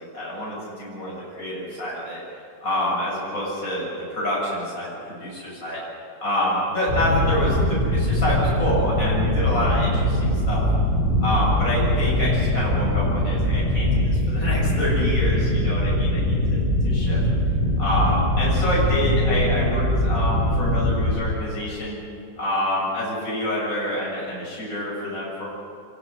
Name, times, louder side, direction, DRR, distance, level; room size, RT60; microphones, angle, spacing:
voice 1, 0.0-2.2 2.6-5.8 6.2-10.6 11.2-17.2 17.8-22.0 22.4-25.5, left 1 dB, 45° left, -6 dB, 7.9 m, -27 dB
sound 1, 6.9-21.1, left 1 dB, 45° right, 7.3 m, -22 dB
26.0 x 24.0 x 6.6 m, 2.6 s
omnidirectional pair, 2.1 m